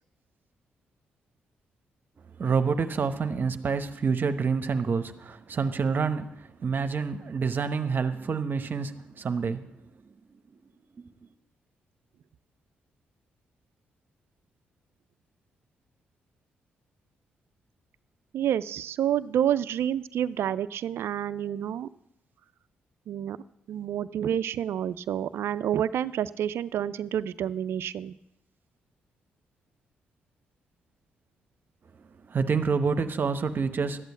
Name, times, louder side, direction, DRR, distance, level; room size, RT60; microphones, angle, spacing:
voice 1, 2.4-9.7 10.3-10.4 11.0-11.3 32.2-34.0, right 5 dB, 50° right, 0.9 m, -28 dB
voice 2, 18.3-21.9 23.1-23.4 23.7-28.2, right 10 dB, 70° right, 0.4 m, -29 dB
12.5 x 8.2 x 8.2 m
supercardioid pair, 50°, 4 cm